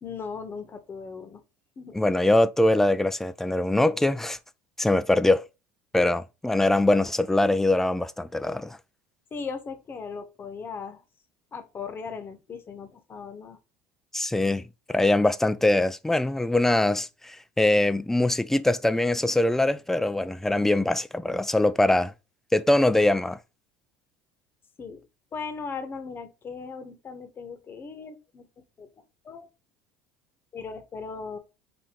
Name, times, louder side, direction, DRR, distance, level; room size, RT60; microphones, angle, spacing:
voice 1, 0.0-1.4 1.8-2.0 9.3-11.0 11.5-13.6 24.8-25.0 25.3-28.9 29.2-29.5 30.5-31.4, left 5 dB, 30° left, 1.0 m, -38 dB
voice 2, 1.9-4.4 4.8-5.5 5.9-8.8 14.1-14.6 14.9-22.1 22.5-23.4, left 1 dB, 5° left, 0.3 m, -23 dB
4.3 x 2.5 x 3.6 m
supercardioid pair, 100°, 7 cm